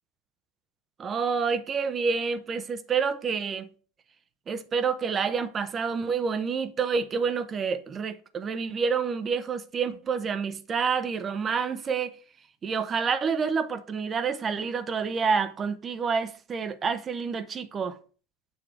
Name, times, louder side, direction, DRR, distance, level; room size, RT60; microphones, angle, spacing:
voice 1, 1.0-3.7 4.5-12.1 12.6-18.0, right 5 dB, 30° right, 0.7 m, -28 dB
7.9 x 3.0 x 5.9 m
hypercardioid pair, 80°, 0 cm